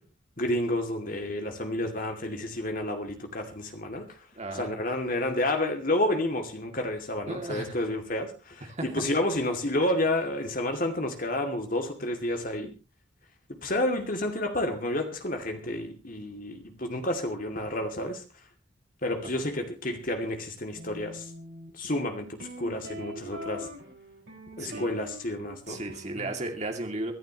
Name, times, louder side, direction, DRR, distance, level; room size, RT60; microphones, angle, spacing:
voice 1, 0.4-4.2 4.5-12.7 13.5-18.2 19.0-21.3 21.7-23.7 24.6-25.8, left 1 dB, 40° left, 5 dB, 2.6 m, -30 dB
voice 2, 4.4-4.7 7.3-7.7 8.7-8.8 24.6-24.9 25.7-27.1, right 2 dB, 35° right, 3 dB, 2.5 m, -34 dB
sound 1, 20.7-26.3, equal, 65° right, 5.7 m, -43 dB
25.0 x 11.5 x 3.0 m, 0.30 s
head